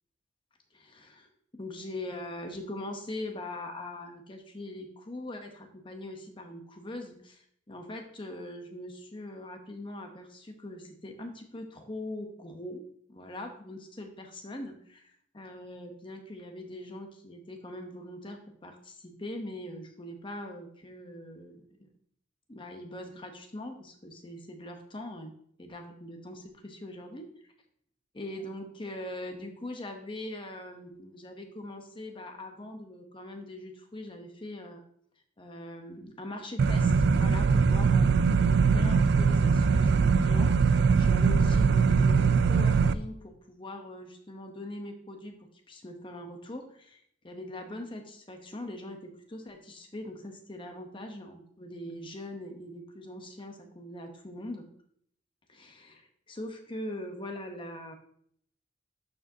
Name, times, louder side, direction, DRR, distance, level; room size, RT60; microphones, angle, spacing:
voice 1, 0.7-1.3 1.5-12.8 13.1-21.9 22.5-25.3 25.6-27.5 28.1-34.8 35.4-45.3 45.7-54.7 55.5-58.0, left 1 dB, 25° left, 4 dB, 0.8 m, -42 dB
sound 1, 36.6-42.9, right 5 dB, 55° right, 0.3 m, -22 dB
11.5 x 4.9 x 2.7 m, 0.65 s
head